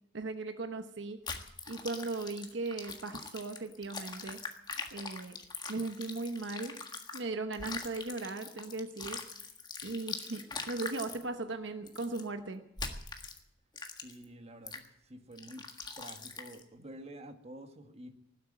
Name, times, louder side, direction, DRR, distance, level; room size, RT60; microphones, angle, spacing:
voice 1, 0.1-1.2 1.7-4.4 4.9-5.4 5.7-6.8 7.1-9.2 9.8-12.6, right 3 dB, 65° right, 7 dB, 1.0 m, -38 dB
sound 1, 1.3-7.2 7.5-11.2 11.9-12.2 12.8-13.4 13.8-14.2 14.7-14.9 15.4-16.6, left 4 dB, 20° left, 1.5 m, -42 dB
voice 2, 14.0-15.7 16.0-18.1, right 1 dB, 35° right, 6 dB, 1.6 m, -49 dB
18.5 x 8.1 x 8.7 m, 0.85 s
head